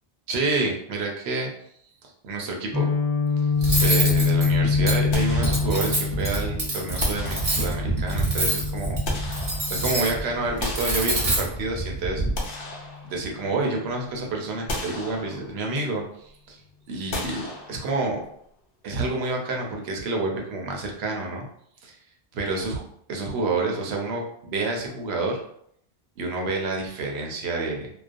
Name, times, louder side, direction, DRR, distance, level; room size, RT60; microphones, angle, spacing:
voice 1, 0.3-1.5 2.2-2.9 3.4-3.5 3.8-9.0 9.4-12.2 13.0-16.6 16.9-18.2 18.8-21.5 21.8-22.0 22.3-22.8 23.1-25.4 26.2-27.9, right 3 dB, 75° right, 1 dB, 0.8 m, -28 dB
Guitar, 2.7-10.6, left 5 dB, 25° left, 0.5 m, -26 dB
Cutlery silverware, 3.6-12.3, right 2 dB, 40° right, 0.7 m, -27 dB
sound 1, 5.1-6.2 7.0-8.0 8.7-10.0 10.6-11.7 12.1-13.6 14.0-14.1 14.7-15.7 17.1-18.2, left 1 dB, 65° left, 0.7 m, -35 dB
2.4 x 2.1 x 2.5 m, 0.67 s
omnidirectional pair, 1.1 m